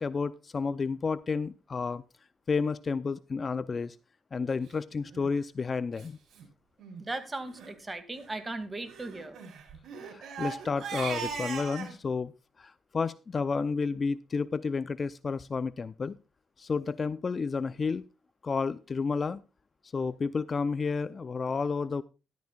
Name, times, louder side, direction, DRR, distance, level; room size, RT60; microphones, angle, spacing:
voice 1, 0.0-2.0 2.5-4.0 4.3-6.2 10.0-12.3 12.6-16.2 16.6-18.0 18.4-19.4 19.9-22.0, left 4 dB, 35° left, 16 dB, 0.5 m, -31 dB
Crying sobbing, 5.0-5.3 6.0-6.1 6.3-6.4 6.8-7.0 7.5-7.7 8.9-11.9, right 6 dB, 65° right, 4.9 m, -39 dB
voice 2, 7.0-9.4, right 2 dB, 20° right, 10 dB, 2.2 m, -37 dB
13.5 x 13.0 x 2.4 m, 0.30 s
cardioid pair, 90°, 0 cm